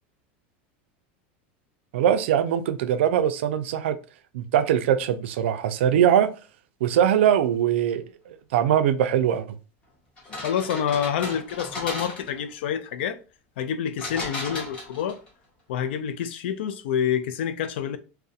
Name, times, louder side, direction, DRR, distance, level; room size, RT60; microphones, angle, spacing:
voice 1, 1.9-4.0 4.3-6.3 6.8-9.6, right 10 dB, 85° right, 0.3 m, -22 dB
sound 1, 10.2-12.5 14.0-15.3, left 1 dB, 15° left, 0.7 m, -35 dB
voice 2, 10.4-13.2 13.6-15.2 15.7-18.0, left 8 dB, 75° left, 0.4 m, -27 dB
2.4 x 2.0 x 2.7 m
supercardioid pair, 180°, 6 cm